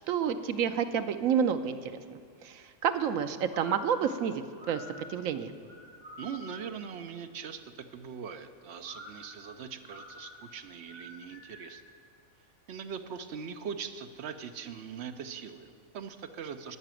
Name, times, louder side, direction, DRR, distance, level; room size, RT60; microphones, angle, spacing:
voice 1, 0.1-1.9 2.4-5.5, right 8 dB, 80° right, 10 dB, 1.1 m, -29 dB
sound 1, 3.5-6.8 8.8-11.9, left 1 dB, 30° right, 4.2 m, -48 dB
voice 2, 6.2-11.8 12.7-16.8, right 7 dB, 60° right, 8 dB, 0.9 m, -41 dB
12.5 x 6.0 x 9.0 m, 2.2 s
omnidirectional pair, 1.4 m